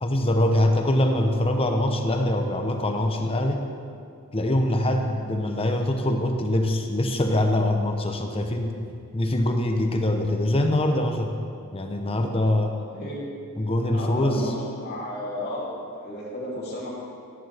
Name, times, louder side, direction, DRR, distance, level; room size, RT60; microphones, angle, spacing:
voice 1, 0.0-3.7 4.3-8.7 9.1-11.4 11.7-12.8 13.6-14.5, left 1 dB, 25° left, 4 dB, 0.9 m, -23 dB
voice 2, 12.9-13.2 13.9-14.5 14.8-16.9, left 1 dB, 50° left, -6 dB, 3.0 m, -33 dB
14.0 x 10.5 x 3.5 m, 2.3 s
head